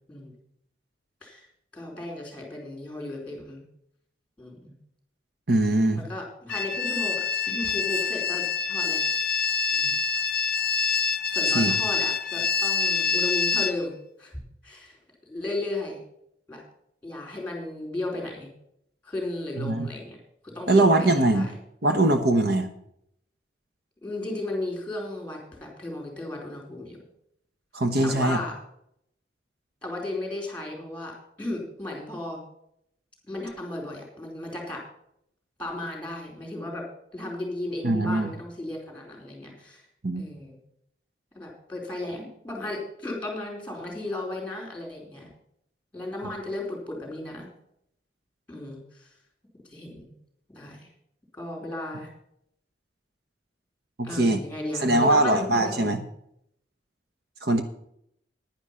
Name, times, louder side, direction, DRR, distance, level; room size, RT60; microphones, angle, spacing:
voice 1, 1.7-3.6 4.4-4.7 6.1-9.0 9.7-10.0 11.3-13.9 14.2-14.4 14.6-15.0 15.3-16.0 16.5-16.6 17.0-18.5 19.0-20.2 20.4-21.6 24.0-27.0 28.0-28.5 29.8-32.4 33.3-34.8 35.6-36.8 37.1-39.8 40.2-40.6 41.3-45.3 45.9-47.5 48.5-49.1 49.7-50.0 50.5-50.9 51.3-52.1 54.0-56.0, left 2 dB, 10° left, 0 dB, 4.5 m, -35 dB
voice 2, 5.5-6.0 11.5-11.7 19.6-19.9 20.7-21.5 21.8-22.7 27.7-28.4 37.8-38.3 40.0-40.2 54.0-54.4 54.8-56.0 57.4-57.6, right 2 dB, 60° right, 7 dB, 1.0 m, -21 dB
sound 1, 6.5-13.7, left 5 dB, 55° left, 0.7 m, -26 dB
10.5 x 10.0 x 5.6 m, 0.73 s
head